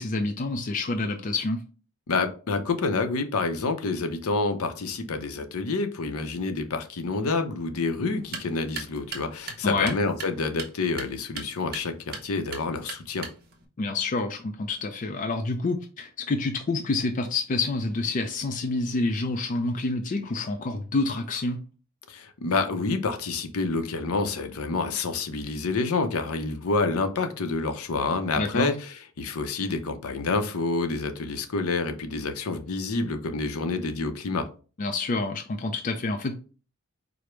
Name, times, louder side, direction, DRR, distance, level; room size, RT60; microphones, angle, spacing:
voice 1, 0.0-1.6 9.6-9.9 13.8-21.6 28.4-28.7 34.8-36.3, left 3 dB, 35° left, 0.4 m, -28 dB
voice 2, 2.1-13.3 22.1-34.5, left 3 dB, 75° left, 0.6 m, -28 dB
sound 1, 8.1-13.7, right 5 dB, 45° right, 0.9 m, -41 dB
4.9 x 2.1 x 4.4 m
head